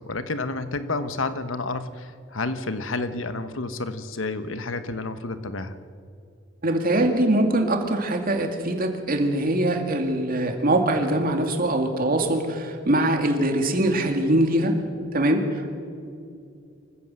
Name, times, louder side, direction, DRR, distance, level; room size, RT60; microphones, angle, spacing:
voice 1, 0.0-5.8, left 3 dB, 85° left, 11 dB, 1.1 m, -30 dB
voice 2, 6.6-14.8 15.1-15.7, right 1 dB, 50° right, 4 dB, 2.3 m, -22 dB
25.0 x 15.0 x 7.7 m, 2.4 s
head